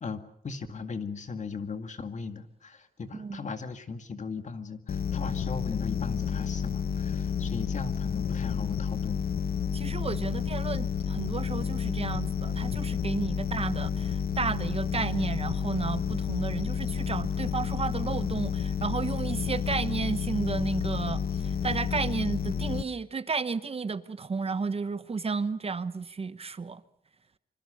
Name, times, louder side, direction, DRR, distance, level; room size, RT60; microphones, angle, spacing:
voice 1, 0.0-9.2, left 4 dB, 50° left, 2.2 m, -38 dB
sound 1, 4.9-22.8, left 7 dB, 80° left, 1.3 m, -30 dB
voice 2, 9.7-26.8, right 4 dB, 40° right, 1.0 m, -32 dB
26.5 x 25.0 x 6.6 m
wide cardioid pair, 115°, 16 cm